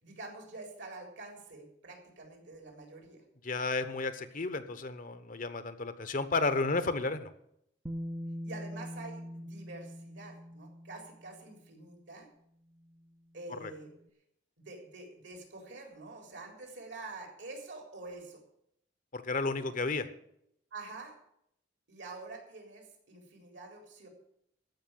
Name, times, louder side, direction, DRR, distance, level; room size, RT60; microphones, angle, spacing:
voice 1, 0.0-3.2 8.4-12.3 13.3-13.9 14.6-18.4 19.5-19.8 20.7-21.2 21.9-24.1, right 3 dB, 70° right, 3 dB, 3.9 m, -47 dB
voice 2, 3.4-7.3 13.5-13.7 19.1-20.1, left 3 dB, 50° left, 11 dB, 1.0 m, -32 dB
Bass guitar, 7.9-11.8 12.9-13.0, equal, 15° right, 0.7 m, -42 dB
14.5 x 5.7 x 9.2 m, 0.74 s
head